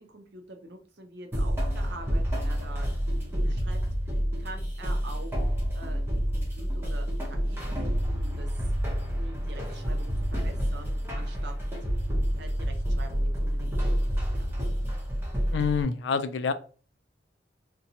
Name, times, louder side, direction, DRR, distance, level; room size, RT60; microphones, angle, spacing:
voice 1, 0.0-3.8 4.1-5.3 5.7-8.5 9.2-11.5 12.4-14.0 14.3-14.6, right 2 dB, 70° right, 5 dB, 0.6 m, -45 dB
sound 1, 1.3-15.8, equal, 15° right, 0.7 m, -28 dB
voice 2, 15.5-16.5, left 5 dB, 75° left, 11 dB, 0.3 m, -28 dB
2.7 x 2.2 x 2.6 m, 0.39 s
head